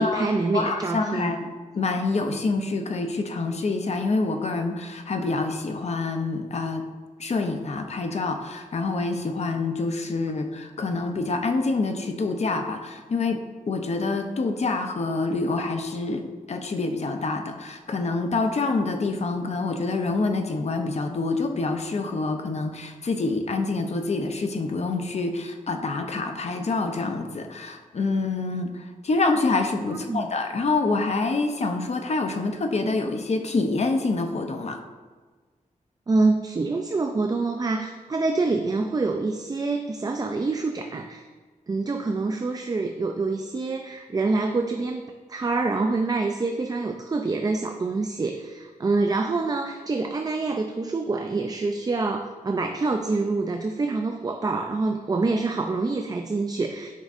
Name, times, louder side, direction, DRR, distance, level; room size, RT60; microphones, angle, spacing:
voice 1, 0.0-1.3 29.9-30.2 36.1-41.3 41.7-45.0 45.3-57.0, right 3 dB, 25° right, 5 dB, 0.3 m, -26 dB
voice 2, 0.5-6.9 7.2-13.4 13.7-16.2 16.5-34.8, left 3 dB, 50° left, 6 dB, 0.6 m, -26 dB
8.2 x 5.1 x 2.5 m, 1.4 s
wide cardioid pair, 105°, 14 cm